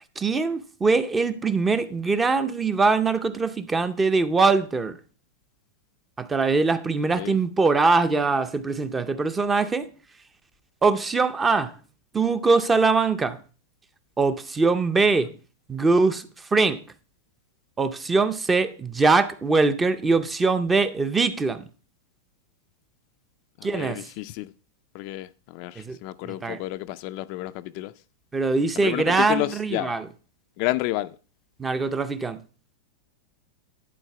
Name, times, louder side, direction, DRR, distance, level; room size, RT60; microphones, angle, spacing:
voice 1, 0.2-5.0 6.2-9.9 10.8-11.7 12.1-13.4 14.2-15.3 15.7-16.3 16.5-16.8 17.8-21.6 23.6-24.1 25.8-26.0 26.2-26.6 28.3-30.1 31.6-32.4, right 4 dB, 10° right, 0.5 m, -22 dB
voice 2, 14.9-15.3 23.6-24.5 24.9-27.9 28.8-29.9 30.6-31.2, left 18 dB, 40° left, 0.3 m, -31 dB
11.0 x 4.0 x 5.7 m
supercardioid pair, 160°, 0 cm